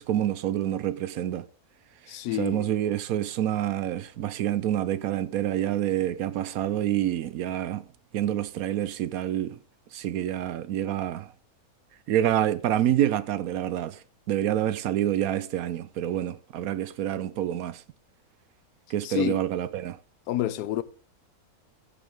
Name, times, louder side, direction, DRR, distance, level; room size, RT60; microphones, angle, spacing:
voice 1, 0.0-1.4 2.4-7.9 8.1-9.5 9.9-11.3 12.1-17.8 18.9-20.0, right 11 dB, 70° right, 1.0 m, -27 dB
voice 2, 2.1-2.7 19.0-19.4 20.3-20.8, left 13 dB, 90° left, 1.2 m, -28 dB
14.0 x 6.9 x 3.5 m
omnidirectional pair, 1.6 m